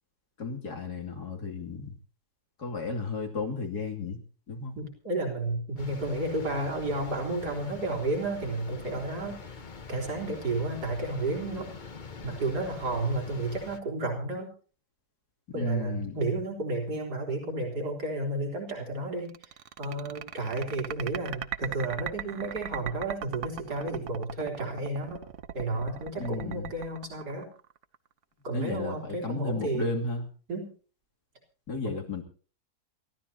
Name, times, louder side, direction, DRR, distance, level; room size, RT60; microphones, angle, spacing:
voice 1, 0.4-1.9 2.6-4.2 4.5-4.8 15.5-16.2 26.2-26.7 28.5-30.2 31.7-32.2, left 4 dB, 80° left, 3 dB, 3.2 m, -34 dB
voice 2, 4.8-9.6 9.9-11.8 12.2-14.5 15.5-19.5 19.8-25.2 25.5-27.5 28.4-29.9 30.5-30.7 31.8-31.9, right 2 dB, 90° right, 0 dB, 4.4 m, -32 dB
sound 1, 5.8-13.8, left 5 dB, 35° left, 1.1 m, -44 dB
sound 2, 19.3-28.0, right 9 dB, 55° right, 1.1 m, -38 dB
27.5 x 14.0 x 2.8 m, 0.40 s
omnidirectional pair, 1.7 m